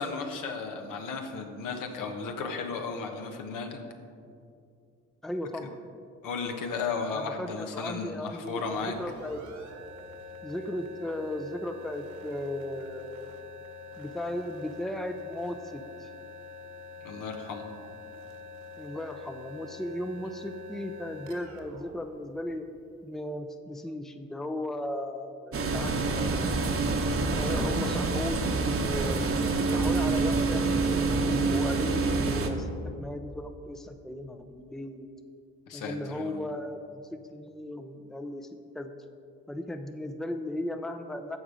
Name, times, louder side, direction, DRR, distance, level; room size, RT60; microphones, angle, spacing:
voice 1, 0.0-3.8 6.2-8.9 17.0-17.7 35.7-36.5, left 4 dB, 70° left, 4 dB, 1.2 m, -34 dB
voice 2, 5.2-5.8 7.1-9.4 10.4-13.3 14.0-16.1 18.8-22.7 23.0-26.5 27.3-29.4 29.7-30.6 31.3-32.7 32.9-35.1 35.7-38.5 38.7-39.0 39.5-41.4, left 1 dB, ahead, 7 dB, 0.6 m, -36 dB
sound 1, 8.4-23.0, left 3 dB, 55° right, 1.5 m, -46 dB
sound 2, 25.5-32.5, right 3 dB, 40° right, 1.1 m, -27 dB
14.0 x 4.9 x 5.1 m, 2.4 s
hypercardioid pair, 55°, 33 cm